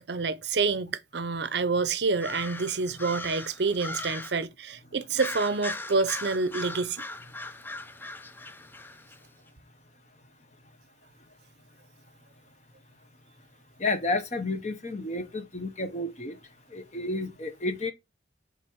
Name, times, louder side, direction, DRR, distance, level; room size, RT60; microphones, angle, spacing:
voice 1, 0.0-7.0, right 4 dB, 60° right, 0.7 m, -28 dB
sound 1, 2.2-4.5 5.1-9.2, left 2 dB, 10° left, 0.4 m, -39 dB
voice 2, 13.8-16.4 16.7-17.9, left 2 dB, 35° left, 1.1 m, -31 dB
7.8 x 3.5 x 6.2 m
head